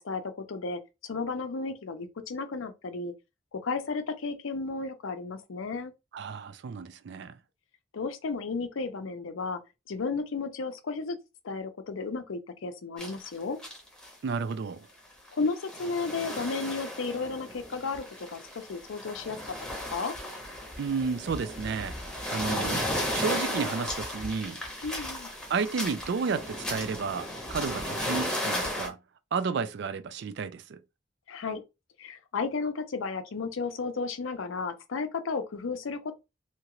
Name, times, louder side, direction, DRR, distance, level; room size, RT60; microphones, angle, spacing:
voice 1, 0.0-3.1 3.5-5.9 7.9-9.6 9.9-11.2 11.4-13.6 15.3-19.5 19.9-20.1 24.8-25.3 31.3-31.6 32.0-36.1, left 4 dB, 75° left, 0.5 m, -33 dB
voice 2, 6.1-7.4 14.2-14.9 20.8-22.0 22.3-22.8 23.1-24.6 25.5-29.0 29.3-30.8, right 5 dB, 55° right, 0.3 m, -32 dB
sound 1, 13.0-13.3 13.6-14.1 14.5-14.6 15.3-28.9, left 1 dB, 5° left, 0.7 m, -35 dB
2.8 x 2.4 x 2.9 m
head